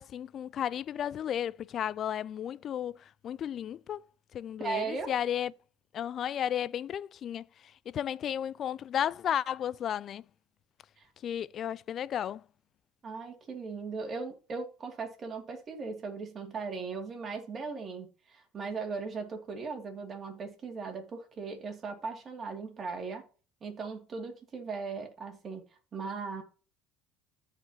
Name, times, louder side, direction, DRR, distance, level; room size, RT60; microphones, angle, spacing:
voice 1, 0.0-3.0 3.2-4.0 4.3-5.5 5.9-7.4 7.9-10.2 11.2-12.4, left 10 dB, 50° left, 0.4 m, -33 dB
voice 2, 4.6-5.1 11.0-11.1 13.0-23.2 23.6-25.6 25.9-26.4, right 4 dB, 35° right, 2.7 m, -38 dB
14.0 x 5.0 x 3.0 m
supercardioid pair, 90°, 0 cm